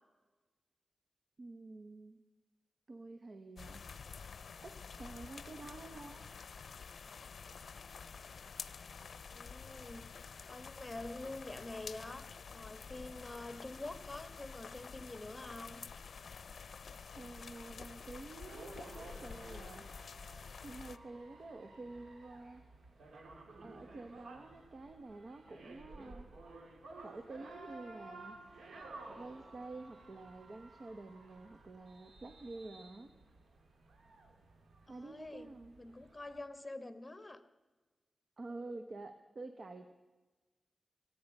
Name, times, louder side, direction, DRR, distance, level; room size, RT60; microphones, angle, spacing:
voice 1, 1.4-2.2 2.9-3.9 4.6-6.3 17.2-19.8 20.6-22.6 23.6-26.3 27.0-28.4 29.1-33.1 34.9-35.8 38.4-39.9, right 2 dB, 60° right, 8 dB, 1.1 m, -49 dB
sound 1, 3.6-21.0, left 5 dB, 75° left, 0.6 m, -49 dB
voice 2, 9.2-15.8 34.9-35.5 35.8-37.4, left 2 dB, 25° left, 11 dB, 1.5 m, -47 dB
sound 2, 18.5-36.4, right 2 dB, 80° right, 2.4 m, -54 dB
24.5 x 9.6 x 5.4 m, 1.3 s
cardioid pair, 50°, 0 cm